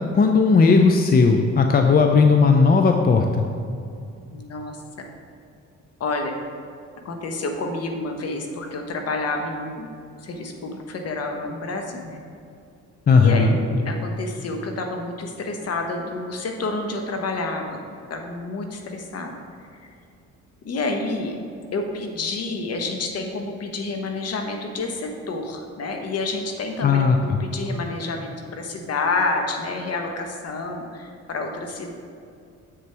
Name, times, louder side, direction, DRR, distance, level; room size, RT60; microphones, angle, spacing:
voice 1, 0.2-3.3 13.1-13.6 26.8-27.2, left 4 dB, 30° left, 4 dB, 0.5 m, -16 dB
voice 2, 4.3-4.8 6.0-6.3 7.0-12.2 13.1-17.8 18.1-19.4 19.8-19.9 20.6-21.4 21.7-31.9, left 3 dB, 55° left, 3 dB, 1.1 m, -29 dB
7.2 x 6.7 x 3.4 m, 2.5 s
cardioid pair, 90°, 30 cm